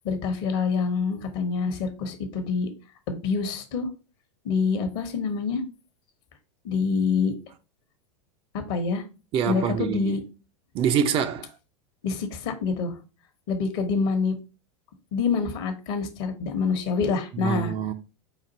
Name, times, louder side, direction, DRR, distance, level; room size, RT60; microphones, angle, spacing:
voice 1, 0.0-2.7 3.1-3.9 4.4-5.6 6.6-7.3 8.7-9.0 9.5-10.2 12.0-13.0 13.5-14.4 15.1-17.7, left 5 dB, 50° left, 1.0 m, -26 dB
voice 2, 9.3-10.2 10.7-11.5 17.3-17.9, right 8 dB, 35° right, 0.5 m, -25 dB
5.0 x 2.5 x 4.0 m
figure-of-eight pair, 90°, 16 cm